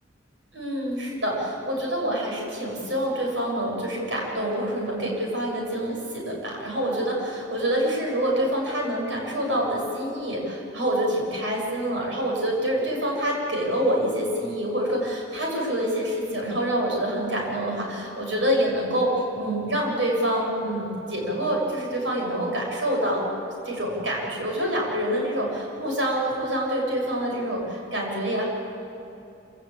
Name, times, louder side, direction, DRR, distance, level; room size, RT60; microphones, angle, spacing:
voice 1, 0.5-23.3 23.6-28.4, equal, 85° right, -1 dB, 7.2 m, -26 dB
26.0 x 17.5 x 8.7 m, 2.7 s
head